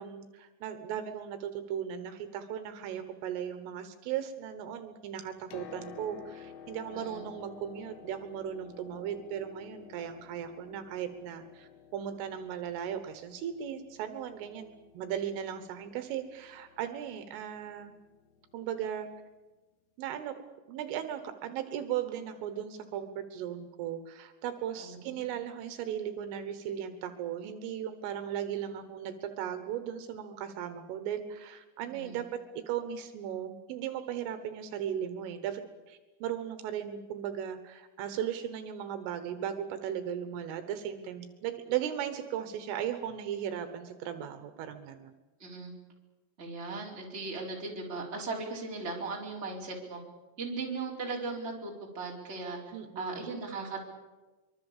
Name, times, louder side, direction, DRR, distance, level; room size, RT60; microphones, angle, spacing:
voice 1, 0.0-17.9 18.5-19.1 20.0-20.3 20.7-32.3 32.7-35.6 35.9-45.1 52.7-53.3, right 9 dB, 75° right, 9 dB, 3.6 m, -37 dB
Piano, 5.3-19.0 20.1-20.2, left 8 dB, 75° left, 3.7 m, -53 dB
voice 2, 6.9-7.2 24.8-25.2 31.9-32.2 45.4-45.7 46.4-50.0 50.4-52.6 52.9-53.9, right 3 dB, 15° right, -2 dB, 3.6 m, -38 dB
24.5 x 23.5 x 7.3 m, 1.2 s
omnidirectional pair, 6.0 m